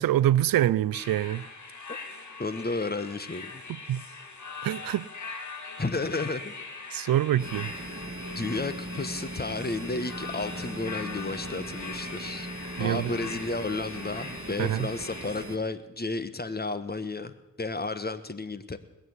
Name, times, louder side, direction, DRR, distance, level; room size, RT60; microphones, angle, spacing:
voice 1, 0.0-1.4 3.9-4.0 4.6-5.1 6.9-7.7 12.8-13.1 14.6-14.9, right 12 dB, 80° right, 0.5 m, -25 dB
sound 1, 0.9-15.5, left 4 dB, 60° left, 2.6 m, -41 dB
voice 2, 2.4-3.6 5.8-6.5 8.3-12.5 12.8-18.8, left 3 dB, 30° left, 1.4 m, -32 dB
buzz hum electric industrial pump room, 7.4-15.6, right 2 dB, 40° right, 1.8 m, -39 dB
20.5 x 7.0 x 9.7 m
cardioid pair, 45°, 34 cm